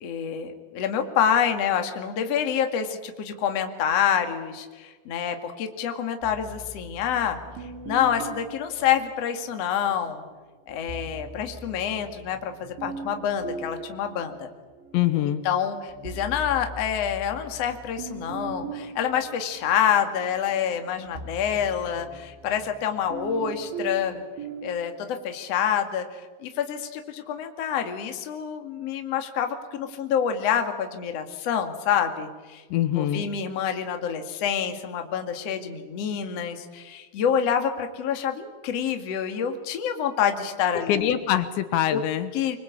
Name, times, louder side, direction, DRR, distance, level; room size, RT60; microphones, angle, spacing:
voice 1, 0.0-7.4 7.9-10.2 10.7-14.5 15.2-24.2 24.6-32.6 33.0-41.1 41.9-42.0 42.3-42.6, left 8 dB, 45° left, 6 dB, 2.4 m, -27 dB
sound 1, 6.2-9.7 10.7-15.1 15.6-24.8, right 3 dB, 80° right, 4.4 m, -40 dB
voice 2, 14.9-15.4 32.7-33.2 40.9-42.3, left 11 dB, 75° left, 11 dB, 3.3 m, -24 dB
25.0 x 23.5 x 8.5 m, 1.4 s
omnidirectional pair, 5.4 m